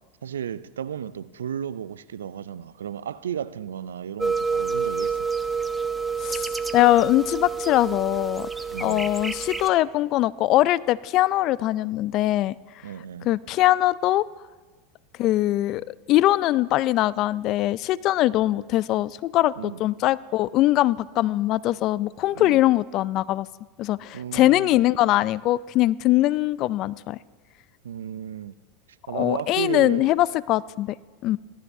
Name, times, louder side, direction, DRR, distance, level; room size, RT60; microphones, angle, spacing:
voice 1, 0.2-5.3 8.7-9.1 12.8-13.3 19.6-19.9 22.3-22.6 24.1-24.8 27.8-28.5 29.1-30.2, right 9 dB, 90° right, 0.4 m, -34 dB
sound 1, 4.2-9.7, right 5 dB, 10° right, 0.7 m, -28 dB
voice 2, 6.7-8.5 8.8-12.5 13.2-14.2 15.2-23.5 23.8-27.2 29.1-30.9 31.2-31.4, left 15 dB, 50° left, 0.3 m, -22 dB
17.5 x 12.5 x 2.7 m
hypercardioid pair, 100°, 0 cm